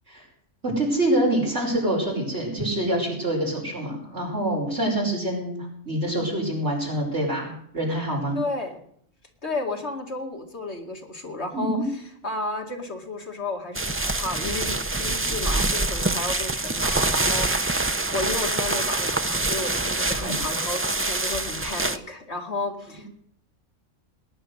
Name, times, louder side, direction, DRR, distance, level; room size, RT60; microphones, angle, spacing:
voice 1, 0.6-8.4 11.5-11.8 20.2-20.4, right 1 dB, 60° right, -1 dB, 5.6 m, -26 dB
voice 2, 8.3-8.8 9.4-11.8 12.2-23.1, left 2 dB, 60° left, 2 dB, 2.6 m, -32 dB
sound 1, 13.7-22.0, right 2 dB, 20° right, 0.3 m, -25 dB
19.0 x 10.5 x 6.5 m, 0.67 s
omnidirectional pair, 1.3 m